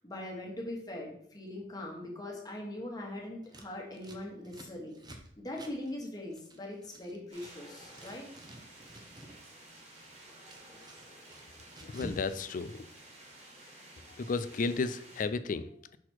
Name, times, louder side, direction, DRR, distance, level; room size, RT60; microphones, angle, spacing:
voice 1, 0.0-5.0 5.4-8.2, left 1 dB, 20° left, -1 dB, 1.4 m, -41 dB
Scissors, 3.4-7.5 7.8-9.4 9.7-12.3 12.5-13.4, right 1 dB, 25° right, 0.8 m, -51 dB
sound 1, 7.3-15.2, right 1 dB, 40° right, 1.7 m, -53 dB
voice 2, 11.8-12.9 14.1-16.0, left 4 dB, 45° left, 13 dB, 0.4 m, -34 dB
6.0 x 4.3 x 4.4 m, 0.67 s
head